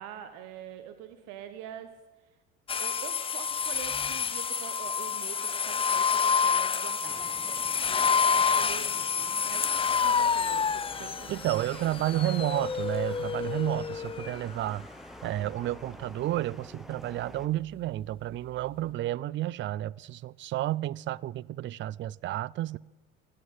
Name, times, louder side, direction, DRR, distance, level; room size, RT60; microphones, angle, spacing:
voice 1, 0.0-1.9 2.8-12.1, right 10 dB, 65° right, 1.3 m, -45 dB
sound 1, 2.7-14.4, left 6 dB, 15° left, 0.5 m, -28 dB
sound 2, 7.1-17.5, equal, ahead, 1.1 m, -49 dB
voice 2, 11.3-14.9 15.2-22.8, right 14 dB, 35° right, 0.4 m, -31 dB
15.0 x 11.0 x 7.7 m
hypercardioid pair, 65°, 33 cm